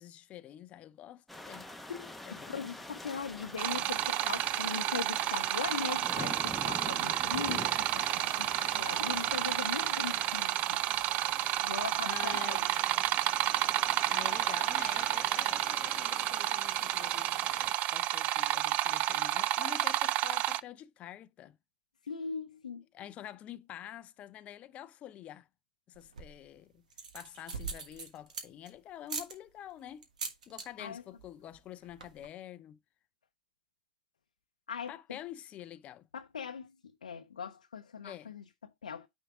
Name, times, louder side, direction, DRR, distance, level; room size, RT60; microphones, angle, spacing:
voice 1, 0.0-1.7 2.2-2.6 12.1-12.6 14.1-17.3 17.6-21.6 22.9-25.5 25.9-26.8 27.1-30.1 30.5-32.8 34.9-36.1 38.0-38.3, left 11 dB, 30° left, 0.5 m, -47 dB
sound 1, 1.3-17.7, left 1 dB, 5° left, 0.8 m, -45 dB
voice 2, 1.9-10.8 11.6-12.7 22.0-22.8 30.8-31.0 34.7-35.2 36.1-39.1, left 6 dB, 80° left, 0.6 m, -40 dB
sound 2, 3.6-20.6, right 14 dB, 40° right, 0.4 m, -31 dB
sound 3, 25.9-26.4 26.9-28.7 29.1-29.3 30.0-30.7 31.0-31.3 31.5-31.6 31.8-32.3, right 5 dB, 75° right, 1.4 m, -41 dB
9.1 x 3.6 x 3.4 m
figure-of-eight pair, 95°, 4 cm